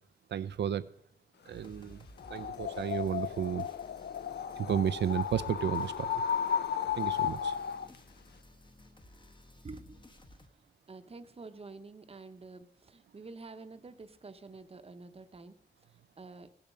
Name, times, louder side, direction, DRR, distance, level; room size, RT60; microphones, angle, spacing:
voice 1, 0.3-0.8 1.5-2.0 2.3-3.7 4.6-6.1 7.0-7.6, right 9 dB, 85° right, 14 dB, 0.4 m, -32 dB
sound 1, 1.5-10.5, left 1 dB, 25° left, 1.0 m, -56 dB
sound 2, 2.2-8.0, left 8 dB, 75° left, 0.4 m, -34 dB
voice 2, 9.6-10.4 10.9-15.6 16.2-16.5, right 3 dB, 35° right, 10 dB, 0.8 m, -48 dB
17.5 x 7.0 x 5.5 m, 0.76 s
wide cardioid pair, 140°, 18 cm